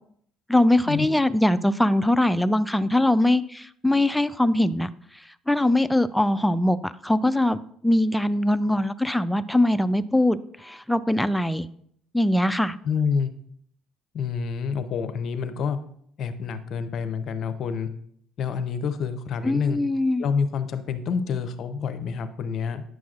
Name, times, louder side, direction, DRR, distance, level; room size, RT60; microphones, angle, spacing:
voice 1, 0.5-4.9 5.5-11.7 12.1-12.8 19.4-20.3, left 1 dB, 5° left, 12 dB, 0.3 m, -22 dB
voice 2, 12.8-13.3 14.1-15.8 16.2-17.9 18.4-19.8 20.2-22.8, left 6 dB, 60° left, 9 dB, 0.6 m, -27 dB
9.2 x 6.2 x 2.4 m, 0.66 s
supercardioid pair, 75°, 0 cm